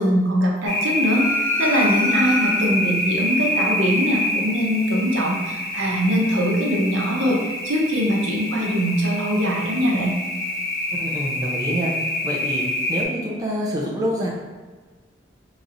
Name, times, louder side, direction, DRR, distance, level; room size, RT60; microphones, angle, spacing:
voice 1, 0.0-10.1, equal, 85° right, -2 dB, 0.8 m, -22 dB
sound 1, 0.6-13.0, left 1 dB, 55° left, 1.1 m, -26 dB
sound 2, 1.1-3.0, left 2 dB, 15° left, 1.0 m, -31 dB
voice 2, 10.9-11.9 12.2-12.6 12.9-14.3, equal, 20° right, -4 dB, 0.5 m, -26 dB
3.9 x 3.0 x 2.5 m, 1.4 s
head